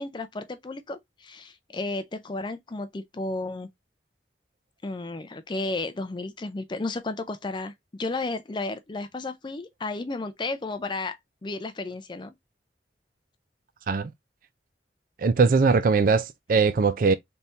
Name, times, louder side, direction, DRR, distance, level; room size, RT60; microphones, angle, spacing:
voice 1, 0.0-3.7 4.8-7.7 8.0-12.3, left 2 dB, 25° left, 0.4 m, -33 dB
voice 2, 15.2-17.1, right 4 dB, 50° right, 0.4 m, -21 dB
4.2 x 3.5 x 2.5 m
head